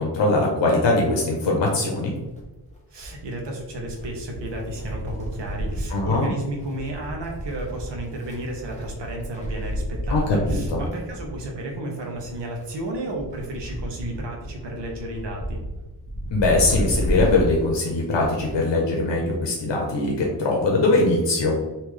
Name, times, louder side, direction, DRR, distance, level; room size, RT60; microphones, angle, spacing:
voice 1, 0.0-2.1 5.9-6.3 10.1-10.8 16.3-21.6, left 2 dB, 75° left, -1 dB, 0.8 m, -21 dB
Wind, 2.2-18.8 19.1-19.2 20.1-20.2, equal, 15° left, 0.8 m, -32 dB
voice 2, 2.9-15.6, right 1 dB, 70° right, 0 dB, 0.9 m, -33 dB
3.6 x 2.7 x 3.1 m, 1.1 s
wide cardioid pair, 160°, 43 cm